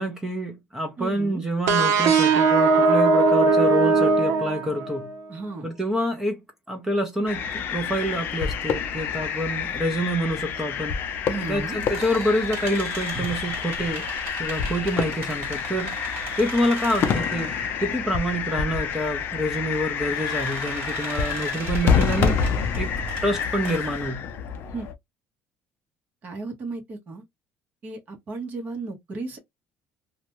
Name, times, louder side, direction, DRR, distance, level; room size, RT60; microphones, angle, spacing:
voice 1, 0.0-5.1 5.6-6.4 6.7-11.0 11.5-14.1 14.4-16.0 16.4-17.5 17.8-22.4 22.8-22.9 23.2-24.2, equal, 10° right, 0.5 m, -27 dB
voice 2, 1.0-1.4 5.3-5.7 11.3-11.8 21.9-22.2 24.7-24.9 26.2-27.2 27.8-29.4, right 3 dB, 35° right, 1.0 m, -34 dB
sound 1, 1.7-5.2, right 4 dB, 80° right, 0.7 m, -19 dB
sound 2, 7.3-24.9, left 6 dB, 45° left, 0.5 m, -28 dB
sound 3, 11.3-18.1 18.5-18.6 19.3-24.1, right 3 dB, 55° right, 1.4 m, -38 dB
2.6 x 2.2 x 2.9 m
cardioid pair, 170°, 5 cm